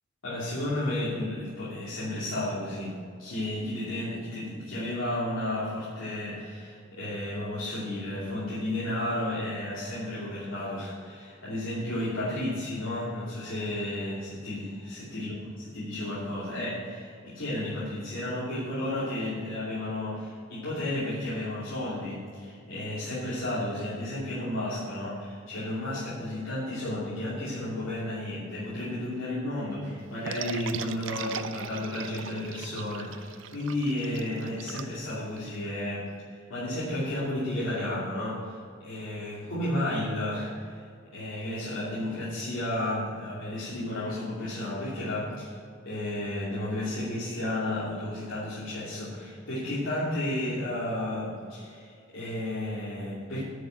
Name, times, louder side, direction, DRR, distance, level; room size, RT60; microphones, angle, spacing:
voice 1, 0.2-15.3 15.7-36.1 36.5-40.8 41.1-45.6 45.8-53.4, left 1 dB, 80° left, -10 dB, 2.9 m, -32 dB
sound 1, 30.3-35.6, right 7 dB, 70° right, 0.5 m, -39 dB
9.8 x 6.7 x 7.8 m, 2.3 s
head